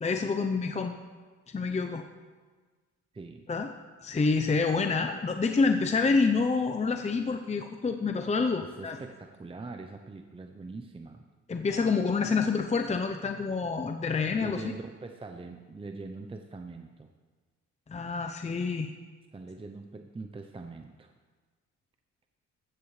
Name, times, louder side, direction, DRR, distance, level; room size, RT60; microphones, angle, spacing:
voice 1, 0.0-0.9 1.5-2.0 3.5-3.7 4.0-9.0 11.5-14.7 17.9-18.9, left 4 dB, 20° left, 6 dB, 0.7 m, -27 dB
voice 2, 3.1-3.4 8.6-11.2 14.4-17.1 19.3-21.1, right 3 dB, 20° right, 5 dB, 0.7 m, -43 dB
15.5 x 13.0 x 3.3 m, 1.4 s
cardioid pair, 90°, 30 cm